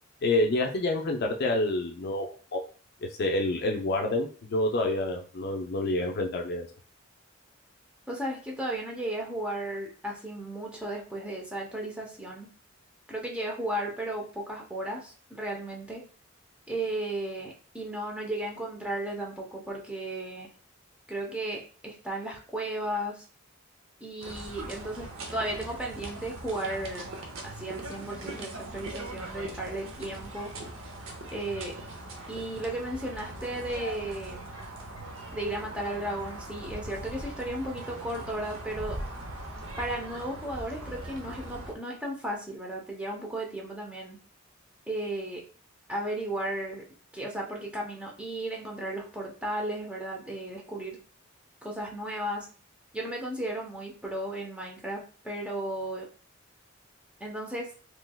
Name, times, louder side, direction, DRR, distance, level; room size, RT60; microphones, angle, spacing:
voice 1, 0.2-2.6 3.0-6.7, left 2 dB, 55° left, 3 dB, 0.5 m, -28 dB
voice 2, 8.1-12.5 13.1-16.0 16.7-20.5 21.1-23.3 24.0-27.1 27.4-30.5 31.3-31.8 32.3-34.5 35.3-39.0 39.8-44.2 44.9-45.4 45.9-46.9 47.1-51.0 51.6-52.5 52.9-56.1 57.2-57.7, right 1 dB, 5° right, -2 dB, 0.7 m, -35 dB
sound 1, 24.2-41.7, right 1 dB, 70° right, 0.7 m, -40 dB
3.2 x 3.0 x 2.2 m, 0.39 s
head